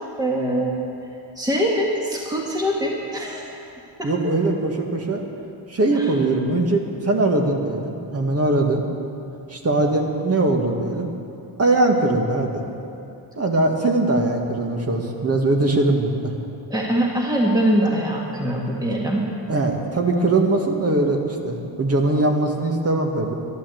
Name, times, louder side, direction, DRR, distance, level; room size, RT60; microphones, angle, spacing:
voice 1, 0.2-0.8 1.4-3.4 4.0-4.1 5.9-6.1 16.7-19.2, right 1 dB, 10° right, -2 dB, 1.9 m, -23 dB
voice 2, 4.0-5.2 5.7-8.8 9.5-11.1 11.6-12.6 13.4-16.3 18.9-19.0 19.5-23.3, right 2 dB, 35° right, 2 dB, 2.1 m, -21 dB
12.5 x 12.0 x 7.9 m, 2.7 s
cardioid pair, 95°, 44 cm